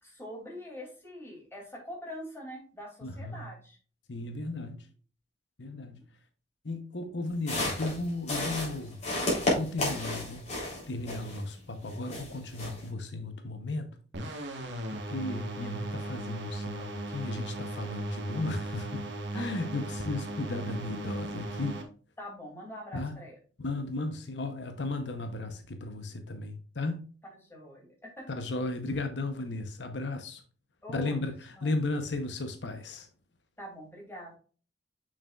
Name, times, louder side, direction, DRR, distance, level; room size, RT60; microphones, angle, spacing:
voice 1, 0.0-3.8 5.9-6.0 19.3-19.5 22.2-23.4 27.5-28.2 30.8-31.2 31.6-31.7 33.6-34.4, left 1 dB, 15° left, 2.7 m, -44 dB
voice 2, 3.0-3.5 4.1-4.9 5.6-6.0 6.6-9.0 9.5-14.0 14.6-21.8 22.9-23.2 23.6-27.1 28.3-30.4 30.9-33.1, left 2 dB, 80° left, 0.9 m, -35 dB
sound 1, 7.3-11.5 11.9-12.9, left 1 dB, 40° left, 3.5 m, -32 dB
sound 2, 14.1-21.8, right 1 dB, 85° right, 1.4 m, -37 dB
6.7 x 6.1 x 2.4 m
head